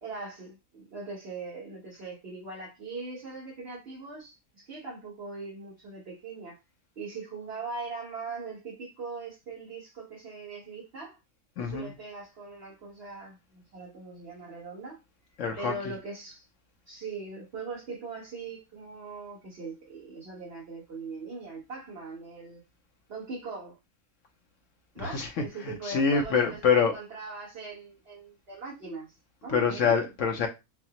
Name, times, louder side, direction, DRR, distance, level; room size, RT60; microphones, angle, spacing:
voice 1, 0.0-6.6 7.0-11.2 11.6-15.0 15.6-16.4 16.9-22.6 23.1-23.8 24.9-29.1 29.4-29.9, right 4 dB, 45° right, 1.2 m, -40 dB
voice 2, 11.6-11.9 15.4-15.7 25.0-27.0 29.5-30.5, left 6 dB, 65° left, 0.9 m, -26 dB
5.6 x 2.0 x 2.8 m
omnidirectional pair, 1.6 m